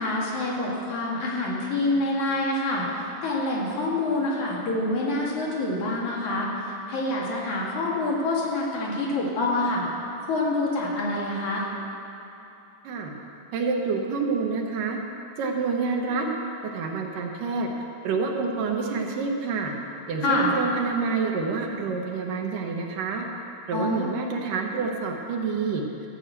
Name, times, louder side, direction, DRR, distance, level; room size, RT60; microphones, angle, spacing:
voice 1, 0.0-2.8 3.2-6.5 6.9-9.8 10.3-11.6 20.2-20.5 23.7-24.2, left 2 dB, 65° left, -4 dB, 3.1 m, -26 dB
voice 2, 13.5-15.0 15.4-16.3 16.7-17.7 18.0-19.7 20.1-23.3 23.7-25.8, right 4 dB, 75° right, 1 dB, 2.7 m, -27 dB
14.5 x 6.2 x 8.1 m, 2.9 s
omnidirectional pair, 3.8 m